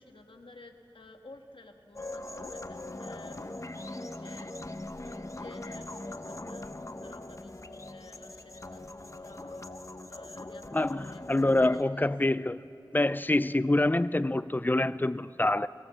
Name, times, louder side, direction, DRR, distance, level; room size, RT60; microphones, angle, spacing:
voice 1, 0.0-6.7 7.0-11.5 11.7-11.9, left 2 dB, 75° left, 1.5 m, -53 dB
sound 1, 2.0-11.8, left 2 dB, 35° left, 0.9 m, -41 dB
voice 2, 10.7-12.6 12.9-15.7, left 2 dB, 20° left, 0.5 m, -26 dB
23.5 x 17.5 x 7.5 m
wide cardioid pair, 55°, 9 cm